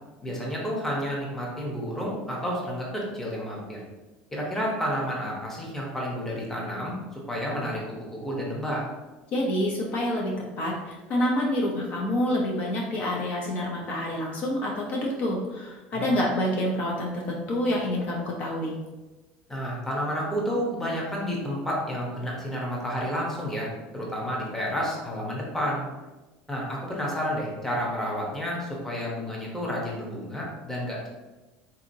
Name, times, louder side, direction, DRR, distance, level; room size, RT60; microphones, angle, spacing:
voice 1, 0.2-3.8 4.3-8.8 15.9-16.2 19.5-25.9 26.5-31.0, equal, 10° left, -4 dB, 0.8 m, -30 dB
voice 2, 9.3-18.7, left 1 dB, 45° left, -2 dB, 0.6 m, -27 dB
3.7 x 2.7 x 2.6 m, 1.1 s
cardioid pair, 145°, 4 cm